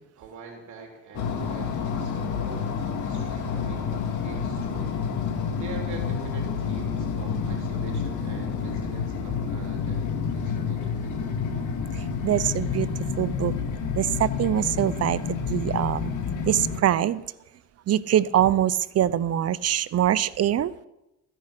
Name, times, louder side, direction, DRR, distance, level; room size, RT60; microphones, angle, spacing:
voice 1, 0.0-5.0 5.6-11.4, right 4 dB, 70° right, 1 dB, 3.1 m, -44 dB
sound 1, 1.1-16.8, left 6 dB, 80° left, 2.1 m, -29 dB
voice 2, 11.9-13.5 13.9-16.1 16.5-17.2 17.9-20.7, right 11 dB, 55° right, 17 dB, 0.6 m, -24 dB
14.0 x 10.5 x 5.8 m, 0.93 s
cardioid pair, 90°, 30 cm